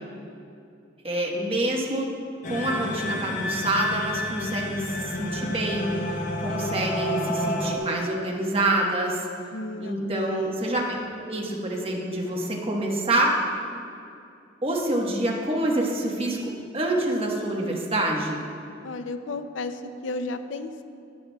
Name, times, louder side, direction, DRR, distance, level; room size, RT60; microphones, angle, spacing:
voice 1, 1.0-2.1 2.5-9.2 9.8-13.3 14.6-18.4, right 1 dB, 30° right, -2 dB, 1.2 m, -27 dB
sound 1, 2.4-7.8, left 1 dB, 40° left, 0.8 m, -29 dB
voice 2, 9.5-10.7 18.8-20.8, left 2 dB, 85° left, 9 dB, 0.5 m, -33 dB
11.5 x 10.0 x 2.3 m, 2.5 s
head